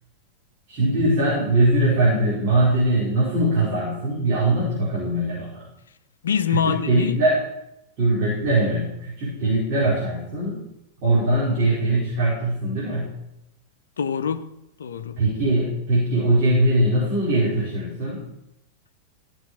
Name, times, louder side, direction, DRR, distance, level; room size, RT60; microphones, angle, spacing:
voice 1, 0.7-5.7 6.5-7.4 8.0-10.6 11.0-13.1 15.2-18.2, right 1 dB, 40° right, 4.8 m, -21 dB
voice 2, 6.2-7.2 14.0-15.2, left 8 dB, 65° left, 0.6 m, -25 dB
15.5 x 6.4 x 5.0 m
figure-of-eight pair, 90°, 0 cm